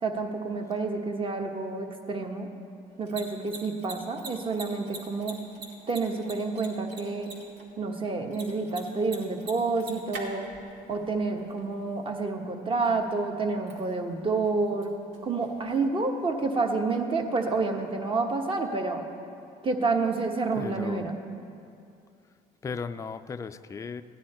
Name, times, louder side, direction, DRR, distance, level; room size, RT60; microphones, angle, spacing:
voice 1, 0.0-2.5 3.0-5.4 5.9-7.3 7.8-10.5 10.9-14.9 15.2-19.0 19.6-21.2, right 3 dB, 30° right, 3 dB, 1.2 m, -29 dB
Mechanisms, 2.8-16.5, right 3 dB, 80° right, 1.8 m, -47 dB
voice 2, 20.5-21.1 22.6-24.0, left 5 dB, 20° left, 10 dB, 0.3 m, -36 dB
15.5 x 9.9 x 4.3 m, 2.5 s
cardioid pair, 110°, 17 cm